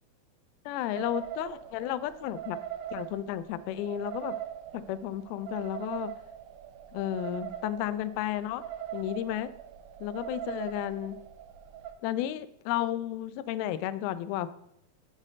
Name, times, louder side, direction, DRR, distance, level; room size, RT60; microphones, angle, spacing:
voice 1, 0.7-2.6 2.9-4.4 4.7-6.1 6.9-8.6 8.9-9.5 10.0-11.2 12.0-14.5, left 12 dB, 80° left, 13 dB, 2.3 m, -33 dB
sound 1, 0.9-11.9, right 11 dB, 85° right, 1.8 m, -41 dB
6.3 x 6.2 x 6.4 m, 0.78 s
omnidirectional pair, 4.5 m